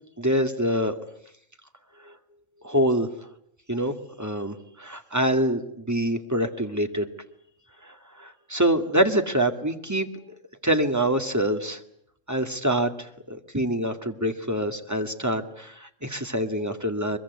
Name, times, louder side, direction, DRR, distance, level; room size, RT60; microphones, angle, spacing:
voice 1, 0.2-1.0 2.6-3.1 3.7-7.1 8.2-10.1 10.6-11.8 12.3-17.2, right 1 dB, 15° right, 6 dB, 2.1 m, -25 dB
24.5 x 23.0 x 9.6 m, 0.72 s
omnidirectional pair, 1.3 m